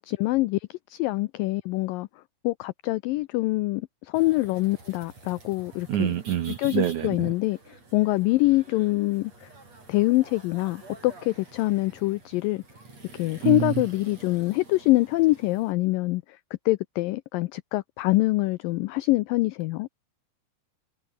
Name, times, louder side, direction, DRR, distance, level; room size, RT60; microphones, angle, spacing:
voice 1, 0.0-2.1 2.4-6.1 6.6-9.5 9.9-12.6 13.1-16.4 16.7-19.9, left 20 dB, 85° left, 1.9 m, -25 dB
sound 1, 4.1-15.7, right 3 dB, 40° right, 9.2 m, -49 dB
voice 2, 5.9-7.3 13.4-13.8, right 11 dB, 65° right, 2.1 m, -26 dB
omnidirectional pair, 4.6 m